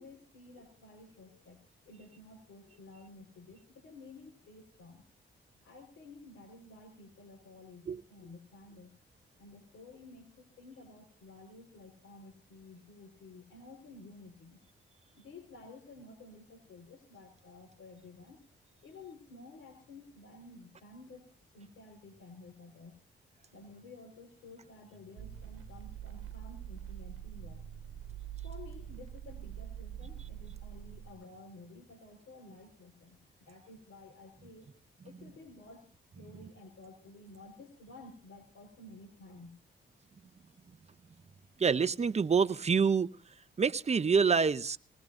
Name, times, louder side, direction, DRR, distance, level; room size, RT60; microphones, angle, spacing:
voice 1, 0.0-1.6 1.8-5.0 5.6-8.9 9.4-14.6 15.1-18.4 18.8-21.3 21.5-23.0 23.5-28.2 28.4-34.8 35.0-35.9 36.1-39.6, left 2 dB, 85° left, 0 dB, 4.6 m, -53 dB
sound 1, 25.2-31.1, right 10 dB, 90° right, 1.2 m, -45 dB
voice 2, 41.6-43.1 43.6-44.8, right 5 dB, 30° right, 14 dB, 0.8 m, -26 dB
21.5 x 20.0 x 2.6 m, 0.39 s
cardioid pair, 90°, 21 cm